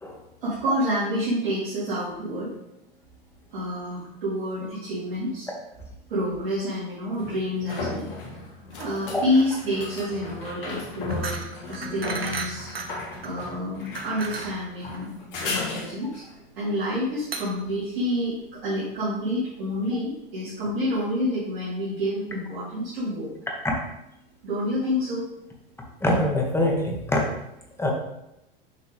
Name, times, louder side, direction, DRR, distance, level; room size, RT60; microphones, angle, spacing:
voice 1, 0.4-2.5 3.5-5.5 6.1-11.4 11.7-12.7 13.2-15.1 15.4-16.2 16.6-23.3 24.4-25.2, equal, 65° right, -10 dB, 2.7 m, -28 dB
sound 1, 5.8-5.9 7.2-16.3 19.7-19.8, left 3 dB, 60° left, 1.9 m, -35 dB
sound 2, 8.7-18.7, right 4 dB, 80° right, 0.8 m, -38 dB
voice 2, 26.0-27.2 27.8-27.9, left 1 dB, 10° left, 0 dB, 1.6 m, -23 dB
6.5 x 5.7 x 3.5 m, 0.86 s
figure-of-eight pair, 80°, 29 cm